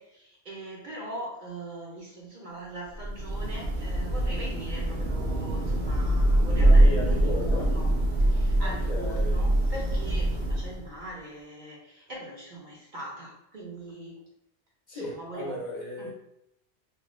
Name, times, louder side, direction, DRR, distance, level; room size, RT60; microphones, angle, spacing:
voice 1, 0.0-7.9 8.3-14.2 14.9-15.6 16.0-16.1, right 1 dB, 50° right, -2 dB, 0.7 m, -41 dB
Thunder / Rain, 2.9-11.0, right 1 dB, 80° right, 1.0 m, -24 dB
voice 2, 6.6-7.7 8.6-9.4 14.9-16.1, left 1 dB, 50° left, -3 dB, 0.7 m, -36 dB
3.0 x 2.3 x 2.9 m, 0.80 s
omnidirectional pair, 1.1 m